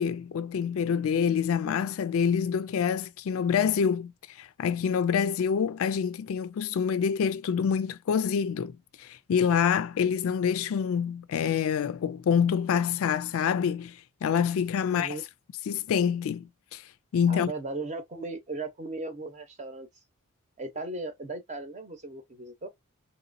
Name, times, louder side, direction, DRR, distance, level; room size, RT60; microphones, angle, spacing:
voice 1, 0.0-4.1 4.4-15.2 15.7-16.8 17.1-17.5, left 7 dB, 65° left, 0.3 m, -26 dB
voice 2, 14.8-15.2 17.3-19.9 20.6-22.7, right 2 dB, 30° right, 0.9 m, -37 dB
3.1 x 2.9 x 2.6 m
head